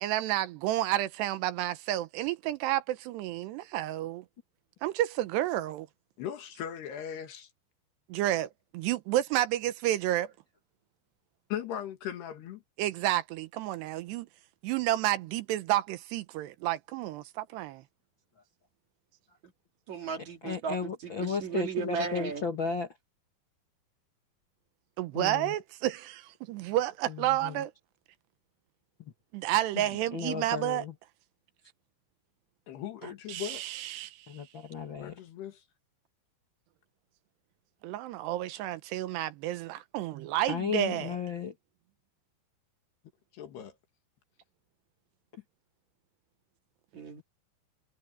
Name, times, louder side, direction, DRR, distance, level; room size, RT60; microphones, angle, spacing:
voice 1, 0.0-4.2 4.8-5.9 8.1-10.3 12.8-14.3 14.6-17.8 25.0-27.7 29.3-30.8 33.3-34.2 37.8-41.2, right 14 dB, 80° right, 2.9 m, -30 dB
voice 2, 6.2-7.5 11.5-12.6 29.8-29.9 32.7-33.6 35.0-35.6 43.3-43.8, left 10 dB, 70° left, 4.0 m, -38 dB
voice 3, 19.9-22.5 46.9-47.2, right 6 dB, 50° right, 3.2 m, -35 dB
voice 4, 20.4-22.9 25.1-25.5 27.1-27.6 30.1-30.9 34.3-35.1 40.5-41.5, left 5 dB, 50° left, 1.4 m, -34 dB
omnidirectional pair, 5.0 m